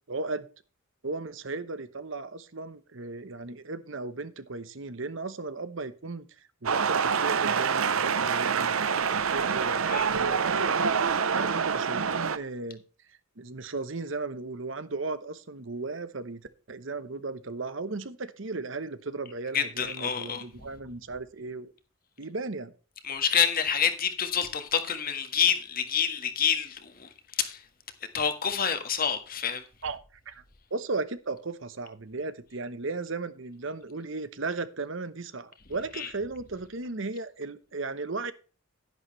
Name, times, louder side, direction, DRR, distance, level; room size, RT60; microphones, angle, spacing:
voice 1, 0.1-0.5 1.0-6.2 6.6-10.8 11.3-12.8 13.4-16.4 16.7-21.7 22.2-22.7 29.8-30.0 30.3-30.4 30.7-38.3, right 3 dB, 60° right, 1.0 m, -36 dB
sound 1, 6.6-12.4, right 6 dB, 80° right, 0.8 m, -26 dB
voice 2, 19.5-20.4 23.0-27.6 28.1-29.6 35.9-36.1, left 7 dB, 45° left, 1.6 m, -28 dB
11.0 x 10.5 x 3.2 m
head